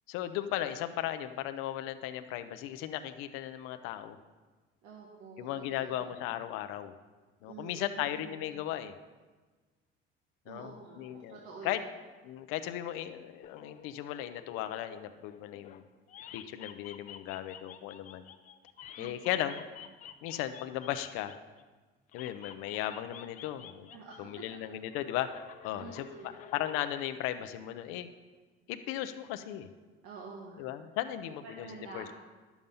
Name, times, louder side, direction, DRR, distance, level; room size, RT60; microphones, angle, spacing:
voice 1, 0.1-4.2 5.4-6.9 7.4-8.9 10.5-10.7 11.0-11.4 11.6-11.8 12.2-15.8 16.3-18.3 19.0-19.6 20.2-21.3 22.1-23.9 24.2-25.3 25.6-26.1 26.5-28.1 28.7-29.7 30.6-32.1, left 12 dB, 80° left, 9 dB, 0.7 m, -36 dB
voice 2, 4.8-6.3 7.4-8.4 10.4-11.9 19.0-19.5 23.9-24.6 25.8-26.4 30.0-30.8 31.3-32.1, right 4 dB, 85° right, -2 dB, 1.7 m, -48 dB
sound 1, 13.4-15.8 16.1-21.6 22.1-24.2 24.5-27.1, left 10 dB, 40° left, 0.5 m, -51 dB
12.0 x 7.2 x 5.4 m, 1.3 s
cardioid pair, 165°, 21 cm